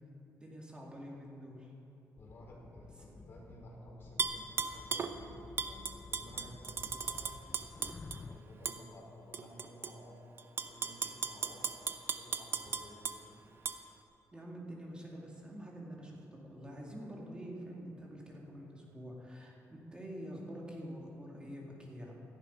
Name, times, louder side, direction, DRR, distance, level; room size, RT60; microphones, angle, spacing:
voice 1, 0.3-1.7 14.3-22.2, equal, 15° right, -2 dB, 2.3 m, -46 dB
voice 2, 2.1-7.3 8.0-10.2 10.6-11.7 12.0-13.2, left 1 dB, 40° left, -3 dB, 4.3 m, -54 dB
sound 1, 2.2-8.4, left 4 dB, 20° left, 0.5 m, -52 dB
Tap / Glass, 4.2-5.1 5.6-8.2 8.7-8.8 9.3-9.9 10.4-13.2 13.7-13.8, right 5 dB, 40° right, 0.8 m, -36 dB
17.5 x 14.5 x 5.5 m, 2.9 s
wide cardioid pair, 170°, 6 cm